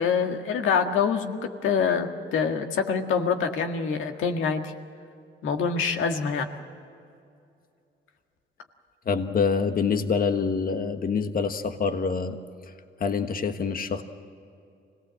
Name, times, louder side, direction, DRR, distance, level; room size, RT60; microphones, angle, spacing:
voice 1, 0.0-4.7 5.4-6.5, left 6 dB, 80° left, 5 dB, 1.8 m, -25 dB
voice 2, 9.0-12.4 12.6-12.7 13.0-14.0, left 5 dB, 45° left, 8 dB, 1.5 m, -26 dB
25.0 x 18.0 x 7.7 m, 2.5 s
cardioid pair, 90°, 20 cm